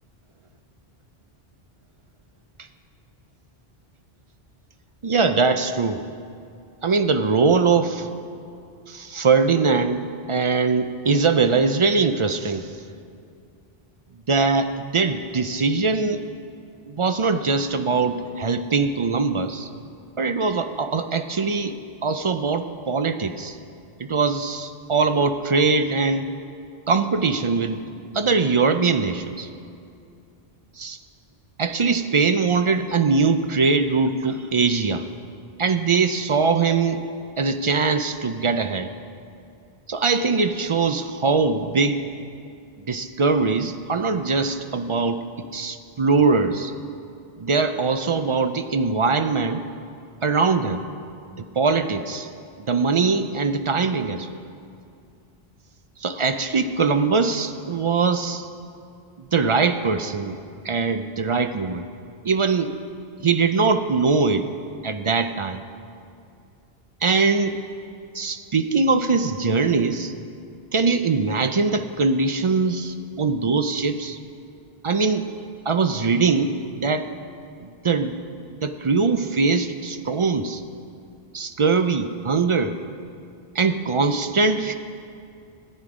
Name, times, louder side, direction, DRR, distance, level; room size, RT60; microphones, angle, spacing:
voice 1, 5.0-6.0 6.8-8.1 8.9-12.7 14.3-16.3 16.9-19.7 20.2-21.8 22.0-23.6 24.0-26.3 26.9-27.8 28.1-29.5 30.8-31.0 31.6-35.1 35.6-37.0 37.4-38.9 39.9-42.0 42.9-46.7 47.4-49.6 50.2-50.9 51.4-52.3 52.7-54.4 56.0-58.5 59.2-60.4 60.6-61.8 62.2-62.7 63.2-64.5 64.8-65.6 67.0-67.6 68.1-70.1 70.7-74.2 74.8-75.3 75.7-77.0 77.6-78.2 78.5-80.6 81.3-82.7 83.5-84.7, right 4 dB, 45° right, 9 dB, 0.4 m, -22 dB
15.0 x 10.5 x 4.9 m, 2.5 s
omnidirectional pair, 1.0 m